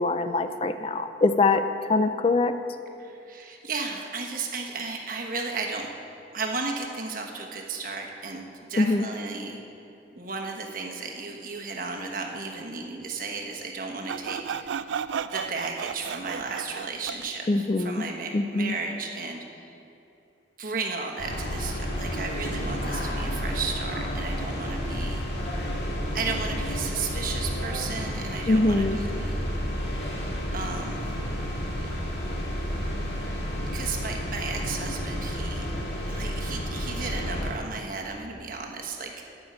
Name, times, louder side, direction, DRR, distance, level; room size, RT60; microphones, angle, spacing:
voice 1, 0.0-1.6 1.9-2.5 8.8-9.1 17.5-18.0 18.3-18.7 28.5-29.0, left 3 dB, 30° left, 9 dB, 0.3 m, -23 dB
voice 2, 3.0-5.9 6.3-8.4 8.7-9.6 10.2-14.8 15.3-19.7 20.6-25.2 26.1-29.4 30.5-31.0 33.2-35.7 36.1-39.3, right 4 dB, 45° right, 1 dB, 1.2 m, -34 dB
Sawing, 14.1-17.3, right 7 dB, 75° right, 0.3 m, -33 dB
sound 1, 21.2-37.5, equal, 60° left, 1.8 m, -31 dB
9.7 x 6.7 x 8.6 m, 2.7 s
head